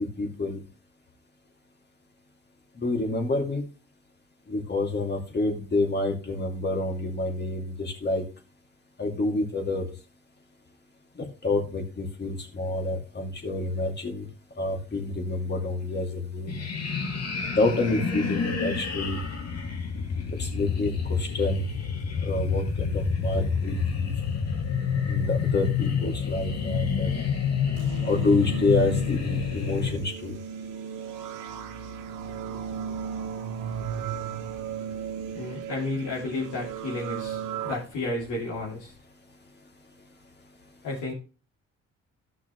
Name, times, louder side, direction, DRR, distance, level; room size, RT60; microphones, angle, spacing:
voice 1, 0.2-0.6 2.8-3.6 4.5-8.2 9.0-9.8 11.4-14.3 14.6-16.5 17.6-19.2 20.4-21.6 22.2-24.1 25.1-27.1 28.0-30.4, left 2 dB, 35° left, 3 dB, 2.5 m, -28 dB
sound 1, 16.5-30.0, left 6 dB, 55° left, 2.2 m, -28 dB
sound 2, 27.7-37.7, right 8 dB, 85° right, 1.1 m, -36 dB
voice 2, 35.3-38.9 40.8-41.1, left 2 dB, 80° left, -6 dB, 2.8 m, -32 dB
13.5 x 5.9 x 3.1 m, 0.35 s
cardioid pair, 90°, 30 cm